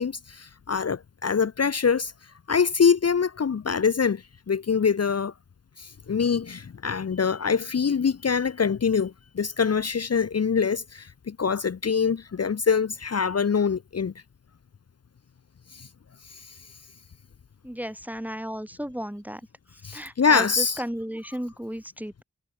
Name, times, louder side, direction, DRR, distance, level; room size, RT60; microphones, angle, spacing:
voice 1, 0.0-2.1 2.5-5.3 5.8-14.1 15.7-15.9 16.3-16.5 19.8-20.8, left 6 dB, 50° left, 0.7 m, -24 dB
voice 2, 17.6-19.4 19.8-22.2, equal, 5° right, 1.1 m, -34 dB
cardioid pair, 45°, 33 cm